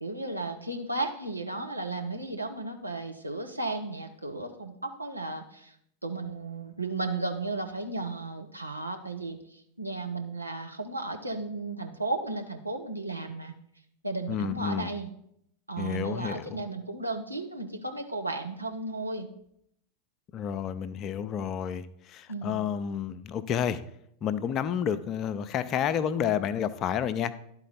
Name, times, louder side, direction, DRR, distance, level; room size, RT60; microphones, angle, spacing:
voice 1, 0.0-5.7 6.0-13.5 14.0-15.1 15.7-19.3 22.3-22.6, right 2 dB, 85° right, 4 dB, 0.8 m, -34 dB
voice 2, 14.3-14.9 15.8-16.6 20.3-23.8 24.2-27.3, left 8 dB, 35° left, 13 dB, 0.4 m, -30 dB
11.5 x 4.2 x 4.1 m, 0.72 s
figure-of-eight pair, 90°, 0 cm